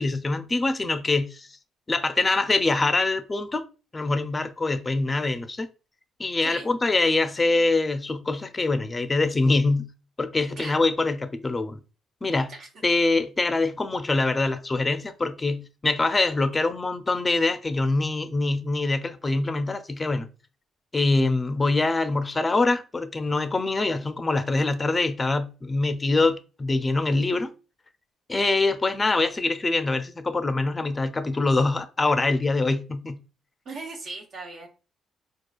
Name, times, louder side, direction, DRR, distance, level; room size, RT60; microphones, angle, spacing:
voice 1, 0.0-1.5 1.9-3.6 3.9-5.7 6.2-9.9 10.2-11.8 12.2-12.5 12.8-20.3 20.9-27.5 28.3-33.2, left 3 dB, 25° left, 0.4 m, -24 dB
voice 2, 6.4-6.7 10.6-10.7 12.5-12.7 33.7-34.7, right 3 dB, 65° right, 0.7 m, -38 dB
4.5 x 2.3 x 2.3 m
cardioid pair, 90°, 0 cm